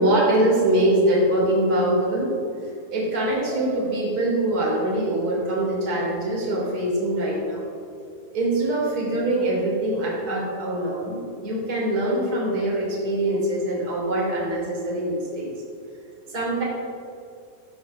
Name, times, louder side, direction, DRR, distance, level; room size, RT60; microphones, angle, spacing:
voice 1, 0.0-2.3 2.9-7.6 8.3-15.5 16.3-16.6, right 1 dB, 25° right, -4 dB, 2.1 m, -23 dB
13.5 x 5.2 x 6.2 m, 2.4 s
omnidirectional pair, 5.9 m